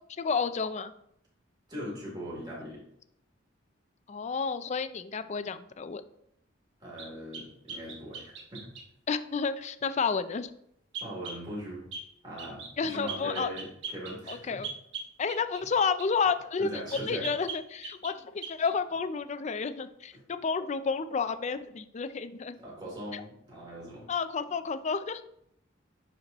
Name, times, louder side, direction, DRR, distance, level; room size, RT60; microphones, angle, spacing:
voice 1, 0.2-0.9 4.1-6.0 9.1-10.5 12.8-13.5 14.3-14.7 15.2-20.1 20.4-22.6 23.1-23.2 24.1-25.2, left 5 dB, 35° left, 12 dB, 0.4 m, -31 dB
voice 2, 1.7-2.8 6.8-8.7 11.0-11.9 12.2-14.6 16.6-17.3 20.1-20.2 22.6-24.1, equal, 20° right, -5 dB, 3.0 m, -40 dB
sound 1, 7.0-8.9 10.9-11.4 11.9-12.1 12.4-12.7 13.1-16.3 16.9-18.2 18.4-18.7, right 5 dB, 65° right, 1.0 m, -41 dB
10.5 x 4.3 x 2.9 m, 0.74 s
head